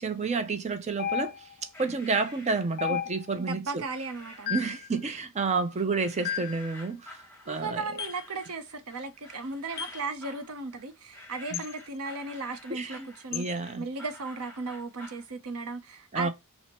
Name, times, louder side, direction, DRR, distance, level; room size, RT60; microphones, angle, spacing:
voice 1, 0.0-1.3 1.8-3.8 4.5-7.8 11.5-11.6 12.7-13.1 13.3-13.8 16.1-16.3, right 4 dB, 30° right, 0.5 m, -30 dB
sound 1, 1.0-1.7 2.8-3.5 4.5-4.9 6.2-6.7 8.0-8.3 9.8-10.1 11.5-11.7 13.3-13.5, left 9 dB, 45° left, 0.4 m, -33 dB
sound 2, 1.7-3.1 3.9-4.6 5.0-5.6 6.0-15.3, left 1 dB, 10° left, 1.0 m, -49 dB
voice 2, 3.3-4.8 7.4-13.5 13.8-16.3, right 3 dB, 80° right, 0.7 m, -36 dB
4.3 x 2.1 x 2.9 m
head